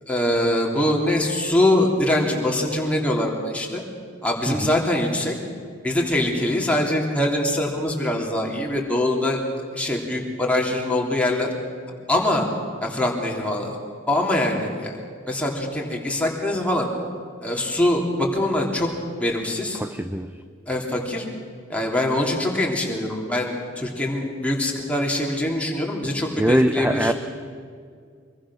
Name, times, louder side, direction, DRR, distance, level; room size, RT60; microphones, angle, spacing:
voice 1, 0.1-3.8 4.2-5.4 5.8-11.5 12.1-12.5 12.8-13.8 14.1-15.0 15.3-16.9 17.4-18.9 19.2-19.8 20.7-21.2 21.7-27.1, left 1 dB, 5° left, -1 dB, 3.3 m, -23 dB
voice 2, 19.8-20.3 26.4-27.1, right 1 dB, 10° right, 8 dB, 0.6 m, -22 dB
25.5 x 22.5 x 6.4 m, 2.2 s
head